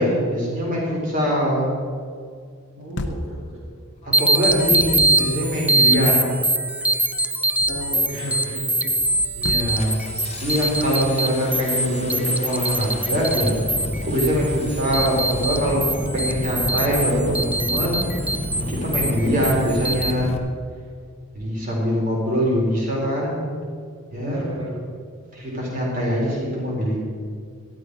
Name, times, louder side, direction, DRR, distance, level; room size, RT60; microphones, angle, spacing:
voice 1, 0.0-1.7 4.0-6.2 9.3-10.0 10.4-13.5 14.0-15.8 16.1-18.1 18.6-20.3 21.3-23.4 24.1-24.4 25.3-27.0, equal, 35° right, -4 dB, 4.2 m, -23 dB
voice 2, 2.8-3.6 7.7-8.9 9.4-9.5 24.2-24.8, equal, 60° right, -7 dB, 2.7 m, -33 dB
sound 1, 3.0-3.4 4.3-5.3 9.4-9.8 10.4-11.2, left 1 dB, 50° left, 0.9 m, -32 dB
Engine starting, 4.0-4.1 4.9-5.2 5.9-6.2 6.6-7.1 7.5-8.1 8.5-8.7 9.0-20.4, left 1 dB, 30° left, 0.8 m, -32 dB
sound 2, 4.1-20.1, right 2 dB, 5° right, 0.3 m, -24 dB
13.0 x 13.0 x 4.8 m, 2.1 s
head